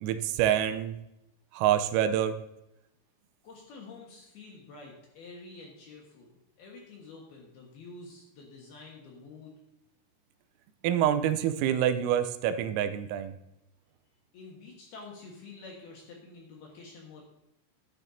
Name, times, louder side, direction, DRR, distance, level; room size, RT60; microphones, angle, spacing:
voice 1, 0.0-1.0 1.5-2.4 10.8-13.4, right 10 dB, 85° right, 10 dB, 3.4 m, -26 dB
voice 2, 3.4-9.5 14.3-17.2, left 3 dB, 65° left, -1 dB, 2.8 m, -48 dB
12.0 x 12.0 x 2.7 m, 0.87 s
omnidirectional pair, 5.9 m